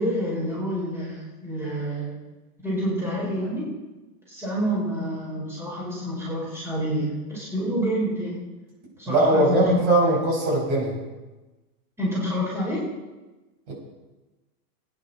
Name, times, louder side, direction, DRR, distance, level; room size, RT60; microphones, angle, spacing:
voice 1, 0.0-2.1 2.6-3.7 4.3-8.4 9.0-10.1 12.0-12.9, equal, 5° right, -6 dB, 4.5 m, -28 dB
voice 2, 9.1-10.9 13.7-13.8, right 2 dB, 50° right, -1 dB, 5.3 m, -21 dB
20.0 x 10.0 x 4.1 m, 1.1 s
supercardioid pair, 155°, 45 cm